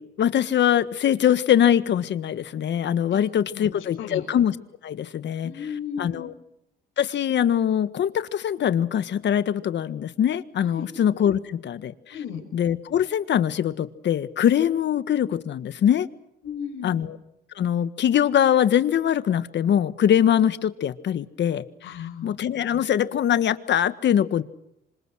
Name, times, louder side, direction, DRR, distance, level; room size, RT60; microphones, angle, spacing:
voice 1, 0.0-4.5 4.8-5.5 6.0-6.3 7.0-11.9 12.5-16.1 16.8-17.2 17.6-21.6 22.2-24.4, left 9 dB, 65° left, 1.6 m, -22 dB
voice 2, 5.4-6.3 10.6-10.9 12.1-12.4 16.4-17.0 21.8-22.4, left 7 dB, 90° left, 5.8 m, -34 dB
27.5 x 25.5 x 6.4 m
cardioid pair, 90°, 20 cm